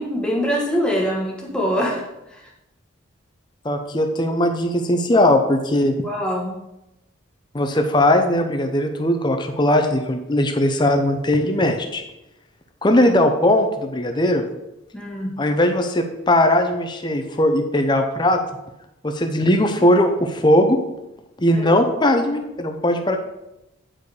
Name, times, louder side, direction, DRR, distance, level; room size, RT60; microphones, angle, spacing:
voice 1, 0.0-2.0 2.3-2.5 6.0-6.5 14.9-15.3 21.5-21.8, equal, 5° left, -2 dB, 1.3 m, -24 dB
voice 2, 3.6-5.9 7.5-12.0 12.8-14.4 15.4-18.4 19.0-20.8 21.4-23.2, left 1 dB, 20° left, 6 dB, 0.6 m, -19 dB
8.8 x 4.7 x 4.7 m, 0.93 s
head